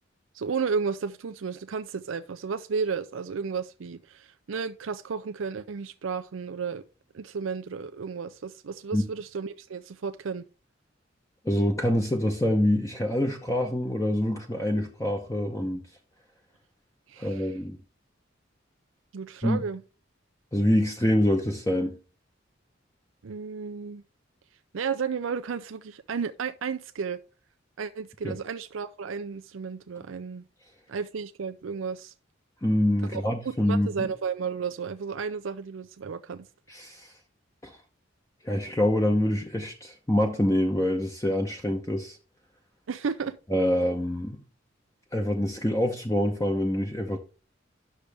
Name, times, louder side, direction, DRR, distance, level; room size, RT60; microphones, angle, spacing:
voice 1, 0.3-6.8 7.1-10.5 17.1-17.5 19.1-19.8 23.2-24.0 24.7-27.2 27.8-30.4 30.9-32.1 33.1-36.5 42.9-43.4, right 5 dB, 85° right, 0.5 m, -33 dB
voice 2, 11.4-15.9 17.2-17.8 19.4-19.6 20.5-22.0 28.2-28.4 32.6-34.1 36.7-37.1 37.6-37.7 38.4-42.2 43.5-44.4 45.1-47.2, left 1 dB, 15° left, 0.8 m, -25 dB
10.0 x 6.4 x 3.4 m
head